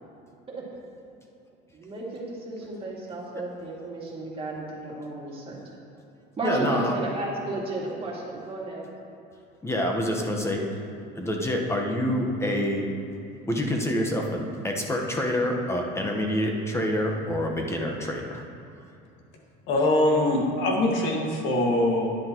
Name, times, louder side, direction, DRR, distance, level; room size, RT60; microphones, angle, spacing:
voice 1, 1.7-5.6 6.4-8.8, right 2 dB, 30° right, -4 dB, 2.3 m, -33 dB
voice 2, 6.4-7.0 9.6-10.6 11.1-12.9 13.5-18.5, equal, 15° left, 1 dB, 1.2 m, -27 dB
voice 3, 19.7-22.1, left 1 dB, 65° left, 0 dB, 1.9 m, -23 dB
11.5 x 10.5 x 3.0 m, 2.7 s
cardioid pair, 120°, 20 cm